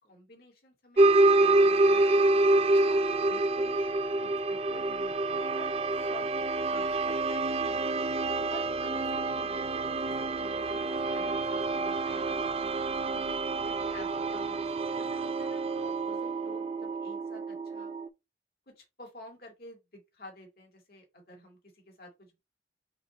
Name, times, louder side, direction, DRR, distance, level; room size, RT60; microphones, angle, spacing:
voice 1, 0.0-2.1 2.7-3.9 4.2-6.2 6.6-7.9 8.3-12.5 13.1-14.6 14.9-17.9 18.7-22.4, left 2 dB, 55° left, 2.1 m, -50 dB
sound 1, 1.0-18.1, right 2 dB, 35° right, 0.4 m, -27 dB
5.0 x 2.7 x 3.9 m
head